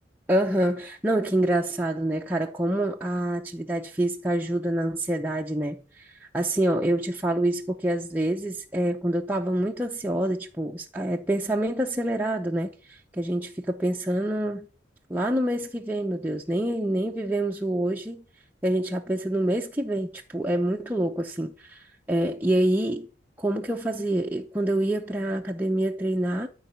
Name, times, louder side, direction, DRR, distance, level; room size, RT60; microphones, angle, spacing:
voice 1, 0.3-14.7 15.1-18.2 18.6-23.1 23.4-26.5, right 1 dB, 10° right, 0.7 m, -26 dB
14.0 x 4.7 x 8.1 m
head